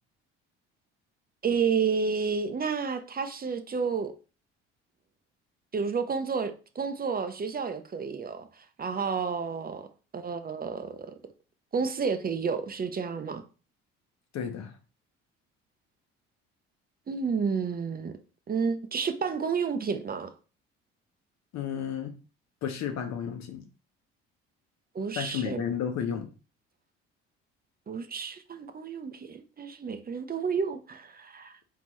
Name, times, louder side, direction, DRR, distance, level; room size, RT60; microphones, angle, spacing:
voice 1, 1.4-4.1 5.7-9.9 10.1-11.1 11.7-13.4 17.1-18.1 18.5-20.3 24.9-25.6 27.9-31.5, right 5 dB, 30° right, 0.7 m, -30 dB
voice 2, 14.3-14.7 21.5-22.1 22.6-23.7 25.1-26.3, left 8 dB, 65° left, 1.0 m, -32 dB
3.8 x 3.7 x 3.1 m
supercardioid pair, 70°, 30 cm